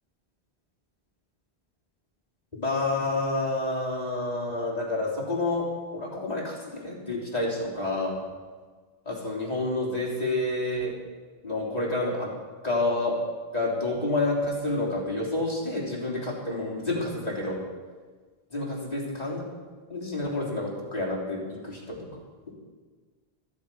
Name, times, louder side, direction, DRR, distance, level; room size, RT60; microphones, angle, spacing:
voice 1, 2.6-8.2 9.1-10.9 11.4-12.3 12.6-13.2 13.5-17.6 18.5-19.4 19.9-22.1, left 2 dB, 40° left, -4 dB, 3.6 m, -29 dB
14.5 x 14.0 x 5.5 m, 1.5 s
omnidirectional pair, 1.1 m